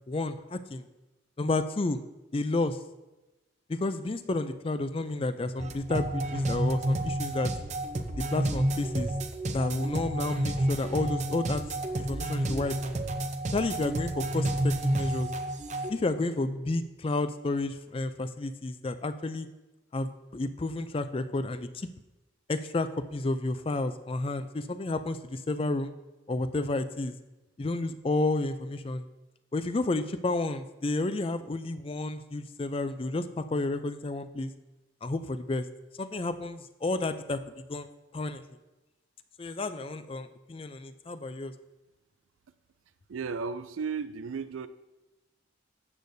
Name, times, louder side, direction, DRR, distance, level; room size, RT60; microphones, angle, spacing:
voice 1, 0.1-0.8 1.4-2.0 2.3-2.8 3.7-7.5 8.2-9.1 9.5-11.6 12.0-12.8 13.5-15.3 15.9-19.5 19.9-21.9 22.5-25.9 26.3-27.1 27.6-29.1 29.5-34.5 35.0-35.7 36.0-37.4 37.7-37.9 38.1-38.4 39.4-41.5, left 2 dB, 30° left, 11 dB, 0.4 m, -31 dB
sound 1, 5.6-15.9, right 1 dB, 35° right, 0.6 m, -30 dB
voice 2, 43.1-44.7, right 5 dB, 90° right, 12 dB, 0.4 m, -34 dB
13.0 x 8.1 x 2.7 m, 1.0 s
head